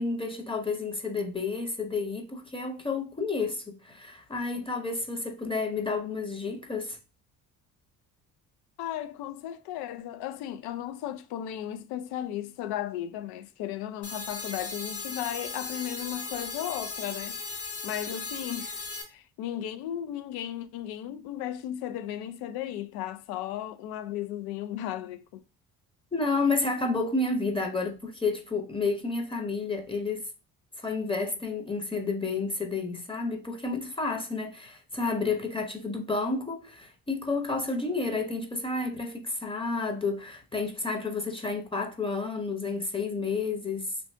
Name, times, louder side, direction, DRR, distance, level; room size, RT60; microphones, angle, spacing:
voice 1, 0.0-7.0 26.1-30.3 30.8-43.9, left 3 dB, 15° left, 0.8 m, -30 dB
voice 2, 8.8-18.8 19.1-25.4, left 11 dB, 85° left, 0.5 m, -35 dB
sound 1, 14.0-19.0, left 4 dB, 40° left, 1.1 m, -37 dB
2.6 x 2.6 x 3.3 m
supercardioid pair, 75°, 37 cm